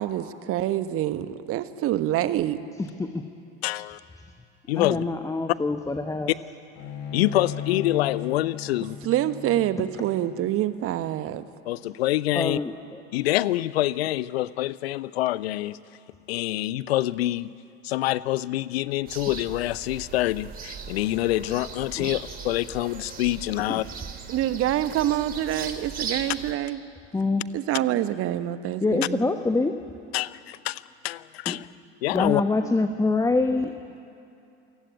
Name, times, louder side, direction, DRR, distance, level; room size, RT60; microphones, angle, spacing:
voice 1, 0.0-2.6 9.0-11.4 24.3-26.8 27.5-29.3, right 12 dB, 40° right, 12 dB, 1.3 m, -26 dB
voice 2, 2.8-3.3 4.8-6.3 12.3-13.0 22.0-22.1 23.7-23.9 27.1-27.4 28.8-29.8 31.5-31.6 32.1-33.7, left 3 dB, 10° left, 7 dB, 1.1 m, -25 dB
voice 3, 3.6-4.0 4.7-5.0 7.1-9.0 11.7-12.6 13.1-15.8 16.3-17.5 17.8-23.8 30.1-31.7 32.0-32.4, left 15 dB, 65° left, 19 dB, 0.7 m, -26 dB
Bowed string instrument, 6.8-12.1, left 8 dB, 50° left, 4.1 m, -37 dB
sound 1, 19.1-26.5, right 5 dB, 25° right, 2.7 m, -38 dB
27.5 x 16.0 x 9.1 m, 2.7 s
figure-of-eight pair, 80°, 33 cm